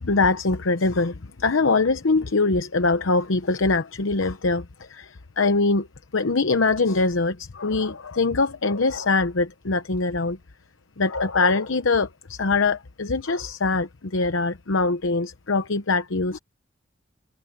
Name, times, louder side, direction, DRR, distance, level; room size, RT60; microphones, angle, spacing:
voice 1, 0.0-4.6 4.9-5.9 6.1-10.4 11.0-16.4, left 3 dB, 80° left, 0.9 m, -23 dB
head